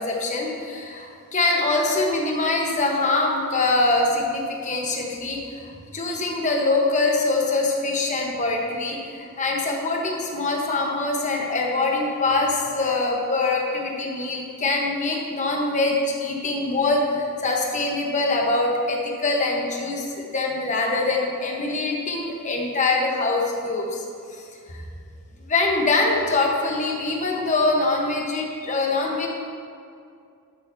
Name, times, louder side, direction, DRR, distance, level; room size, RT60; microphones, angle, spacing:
voice 1, 0.0-24.0 24.3-24.4 24.7-24.8 25.5-29.3, left 2 dB, 35° left, 0 dB, 1.1 m, -24 dB
11.5 x 8.5 x 2.8 m, 2.4 s
head